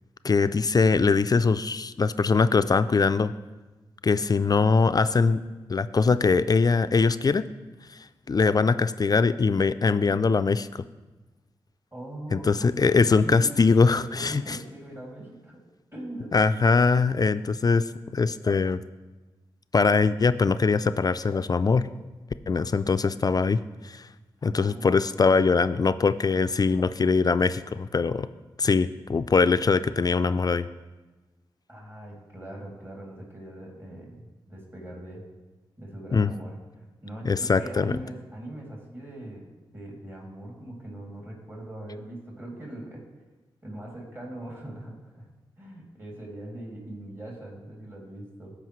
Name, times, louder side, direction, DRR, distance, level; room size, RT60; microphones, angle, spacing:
voice 1, 0.2-3.3 4.0-5.4 5.7-7.4 8.3-10.7 12.3-14.6 16.3-17.8 18.1-18.8 19.7-21.9 22.5-24.1 24.4-28.3 28.6-30.7 36.1-36.3 37.3-37.9, left 4 dB, 40° left, 12 dB, 0.3 m, -22 dB
voice 2, 11.9-13.6 13.9-15.6 15.9-16.3 24.4-25.0 31.7-35.2 35.8-43.0 43.6-45.3 45.6-48.5, right 1 dB, 25° right, -2 dB, 2.6 m, -41 dB
14.0 x 5.0 x 3.1 m, 1.2 s
supercardioid pair, 40°, 10 cm